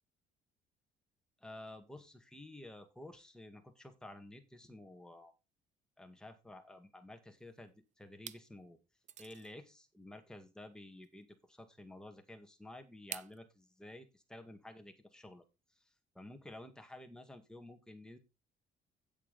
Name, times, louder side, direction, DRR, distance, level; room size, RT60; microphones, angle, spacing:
voice 1, 1.4-5.3 6.0-8.8 9.2-15.4 16.2-18.2, left 1 dB, 5° left, 5 dB, 1.9 m, -52 dB
sound 1, 7.3-7.7 8.1-8.5 9.0-9.5 11.0-11.1 13.1-13.4, right 9 dB, 45° right, 0.7 m, -47 dB
8.8 x 8.4 x 4.1 m, 0.26 s
cardioid pair, 110°, 17 cm